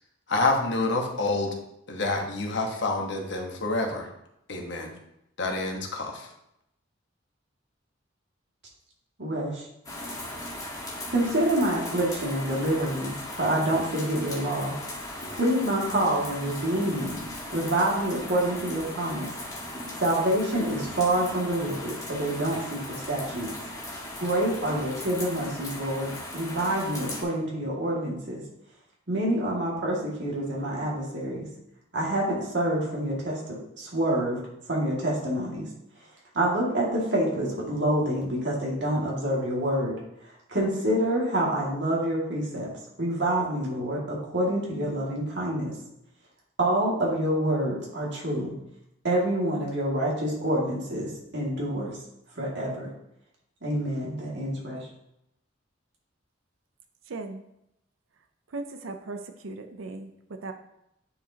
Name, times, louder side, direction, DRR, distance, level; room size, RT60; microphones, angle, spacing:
voice 1, 0.3-1.6 1.9-4.1 4.5-4.9 5.4-6.3, left 2 dB, 60° left, 2 dB, 1.2 m, -27 dB
voice 2, 9.2-9.6 11.1-14.7 15.3-17.2 17.5-19.3 20.0-23.5 24.2-28.4 29.1-31.5 31.9-34.4 34.7-35.7 36.3-39.9 40.5-42.7 43.0-45.7 46.6-48.5 49.0-52.0 52.4-52.9 53.6-54.9, right 1 dB, 60° right, -4 dB, 2.2 m, -27 dB
sound 1, 9.8-27.2, left 1 dB, 20° left, 1.4 m, -38 dB
voice 3, 57.1-57.4 58.5-60.1 60.4-60.5, right 3 dB, 85° right, 7 dB, 0.6 m, -37 dB
9.7 x 4.9 x 2.9 m, 0.80 s
head